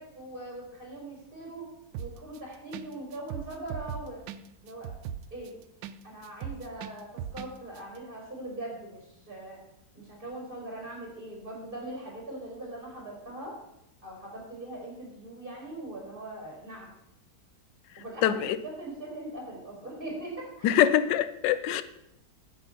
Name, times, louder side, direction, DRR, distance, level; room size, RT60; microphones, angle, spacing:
voice 1, 0.0-1.7 2.0-4.2 4.6-4.9 5.3-5.6 6.0-9.6 9.9-13.6 14.0-16.9 18.0-20.8, right 1 dB, 25° right, 4.4 m, -41 dB
sound 1, 1.9-2.4 2.7-2.9 3.1-6.0 6.2-7.5 7.8-7.9, right 9 dB, 85° right, 1.3 m, -38 dB
voice 2, 18.2-18.6 20.6-21.8, left 11 dB, 80° left, 1.3 m, -24 dB
9.4 x 8.2 x 5.6 m
omnidirectional pair, 2.0 m